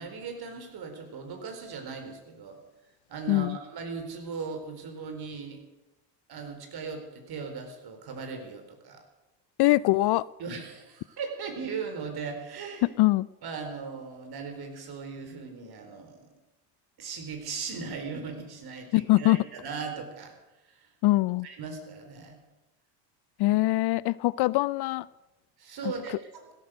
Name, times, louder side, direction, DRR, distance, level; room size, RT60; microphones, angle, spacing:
voice 1, 0.0-2.6 3.1-5.6 6.3-9.0 10.4-13.0 13.4-16.3 17.0-20.3 20.7-20.9 21.4-22.4 25.6-26.5, right 5 dB, 50° right, 6 dB, 4.1 m, -38 dB
voice 2, 9.6-10.3 12.8-13.3 18.9-19.4 21.0-21.5 23.4-25.1, left 18 dB, 55° left, 20 dB, 0.5 m, -23 dB
16.0 x 13.5 x 6.5 m, 1.0 s
supercardioid pair, 95°, 48 cm